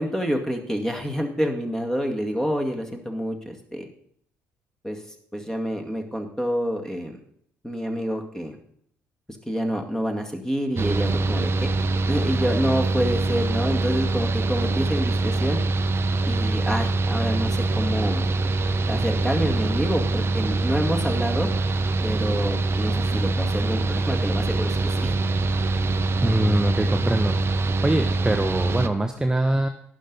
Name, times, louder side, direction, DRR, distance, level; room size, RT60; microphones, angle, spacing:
voice 1, 0.0-3.8 4.8-5.0 5.3-7.2 7.6-8.6 9.5-11.7 12.1-15.6 16.2-18.2 18.9-21.5 22.0-25.2, equal, 10° left, 3 dB, 2.1 m, -27 dB
Mechanical fan, 10.8-28.9, right 3 dB, 35° right, 0.8 m, -24 dB
voice 2, 26.2-29.7, right 1 dB, 10° right, 6 dB, 0.9 m, -23 dB
11.5 x 10.0 x 4.0 m, 0.67 s
figure-of-eight pair, 50°, 7 cm